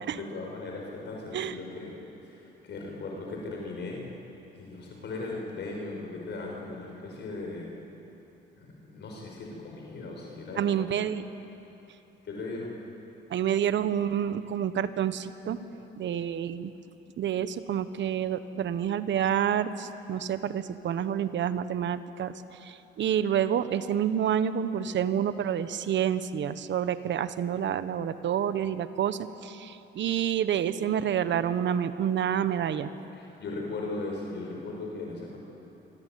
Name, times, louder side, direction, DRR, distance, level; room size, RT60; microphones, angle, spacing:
voice 1, 0.0-4.3 4.5-7.8 8.6-11.1 12.2-12.9 33.1-35.4, left 2 dB, 60° left, -1 dB, 5.7 m, -38 dB
voice 2, 10.6-11.2 13.3-15.6 16.0-16.7 17.2-32.9, right 9 dB, 65° right, 12 dB, 1.3 m, -28 dB
25.5 x 24.5 x 9.4 m, 3.0 s
cardioid pair, 90°, 20 cm